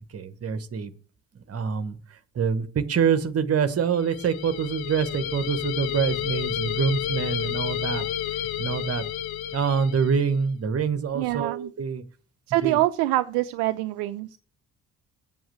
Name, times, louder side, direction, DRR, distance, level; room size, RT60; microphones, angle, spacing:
voice 1, 0.1-0.9 1.5-1.9 2.4-8.0 8.6-9.0 9.5-12.0 12.6-12.8, right 6 dB, 30° right, 11 dB, 1.1 m, -25 dB
sound 1, 3.9-10.3, left 11 dB, 55° left, 0.8 m, -31 dB
voice 2, 11.1-11.7 12.5-14.4, right 16 dB, 60° right, 12 dB, 0.6 m, -25 dB
7.8 x 7.2 x 8.2 m, 0.40 s
figure-of-eight pair, 45°, 45 cm